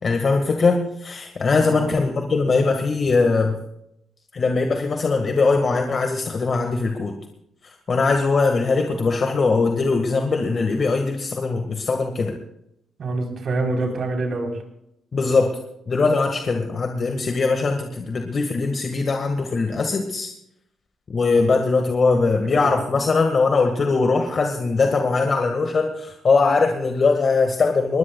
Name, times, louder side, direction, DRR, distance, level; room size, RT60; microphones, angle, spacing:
voice 1, 0.0-3.6 4.3-7.1 7.9-12.3 15.1-15.5 15.9-20.3 21.1-28.0, left 4 dB, 50° left, 4 dB, 1.8 m, -21 dB
voice 2, 1.6-1.9 13.0-14.6 22.1-23.0, right 2 dB, 60° right, 2 dB, 4.0 m, -27 dB
21.0 x 20.0 x 2.4 m, 0.79 s
supercardioid pair, 55°, 0 cm